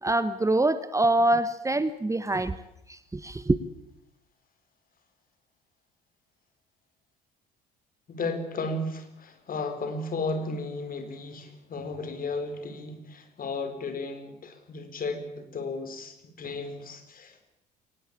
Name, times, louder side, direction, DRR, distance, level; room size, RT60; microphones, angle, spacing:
voice 1, 0.0-2.5 2.9-3.6, right 2 dB, 15° right, 13 dB, 1.3 m, -25 dB
voice 2, 8.1-17.5, left 3 dB, 40° left, 8 dB, 4.7 m, -34 dB
23.0 x 19.5 x 8.6 m, 0.81 s
figure-of-eight pair, 55°, 21 cm